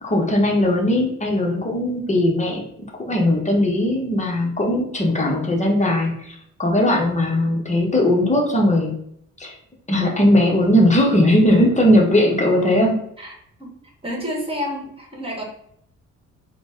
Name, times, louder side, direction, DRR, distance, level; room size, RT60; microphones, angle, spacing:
voice 1, 0.0-2.6 3.0-8.9 9.4-9.5 9.9-13.0, left 1 dB, 25° left, 0 dB, 0.9 m, -18 dB
voice 2, 13.2-13.7 14.0-15.4, equal, 20° right, -1 dB, 1.3 m, -29 dB
3.8 x 2.2 x 3.5 m, 0.71 s
cardioid pair, 90°, 30 cm